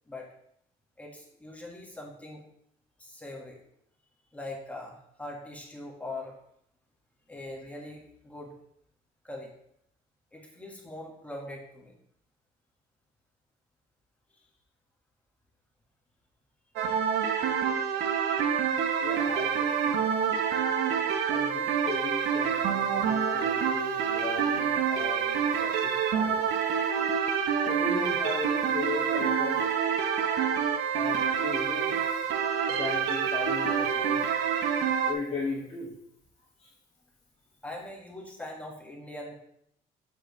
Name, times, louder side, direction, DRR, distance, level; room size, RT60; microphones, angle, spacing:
voice 1, 1.0-2.4 3.0-3.6 4.3-6.3 7.3-8.5 9.2-9.5 10.3-11.9 37.6-39.3, left 1 dB, 10° left, -1 dB, 1.6 m, -42 dB
sound 1, 16.8-35.1, right 7 dB, 80° right, 0.8 m, -27 dB
voice 2, 19.0-20.2 21.3-26.4 27.6-29.6 30.9-32.2 32.7-34.2 35.1-35.9 36.6-36.7, left 3 dB, 35° left, -5 dB, 1.9 m, -37 dB
7.6 x 7.1 x 3.2 m, 0.72 s
cardioid pair, 110°, 17 cm